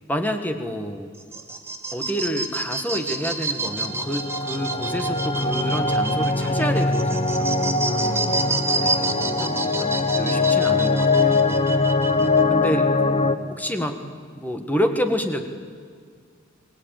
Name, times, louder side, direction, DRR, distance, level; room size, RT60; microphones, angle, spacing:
voice 1, 0.1-1.1 1.9-7.8 8.8-9.1 9.4-11.6 12.5-12.9 13.5-14.0 14.3-15.4, equal, 10° left, 6 dB, 1.7 m, -28 dB
sound 1, 1.1-12.4, right 3 dB, 10° right, 1.5 m, -29 dB
sound 2, 3.7-13.3, left 3 dB, 30° left, 1.1 m, -22 dB
voice 2, 7.8-8.7 9.0-9.7 12.5-13.4, equal, 80° left, 0 dB, 6.2 m, -39 dB
24.5 x 18.5 x 9.1 m, 2.1 s
head